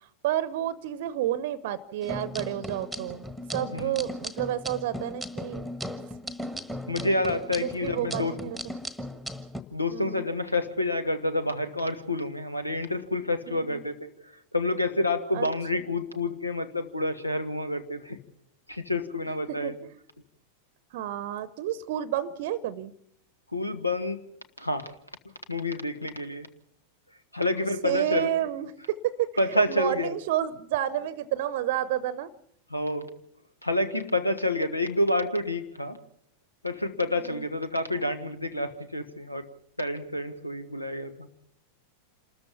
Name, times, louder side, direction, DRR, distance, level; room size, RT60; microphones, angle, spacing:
voice 1, 0.2-5.7 7.6-8.6 9.9-10.2 13.5-13.8 15.3-15.5 19.5-19.9 20.9-22.9 27.8-32.3 37.2-37.4, right 12 dB, 50° right, 18 dB, 0.8 m, -30 dB
sound 1, 2.0-9.6, equal, 5° left, 1.4 m, -37 dB
voice 2, 6.9-8.3 9.7-14.1 14.5-18.2 18.7-19.8 23.5-24.2 24.6-24.9 25.5-26.5 27.3-28.3 29.4-30.1 32.7-33.1 33.6-36.0 36.6-39.5 39.8-41.3, left 1 dB, 85° left, 10 dB, 1.4 m, -28 dB
27.0 x 14.0 x 7.1 m, 0.73 s
figure-of-eight pair, 90°, 0 cm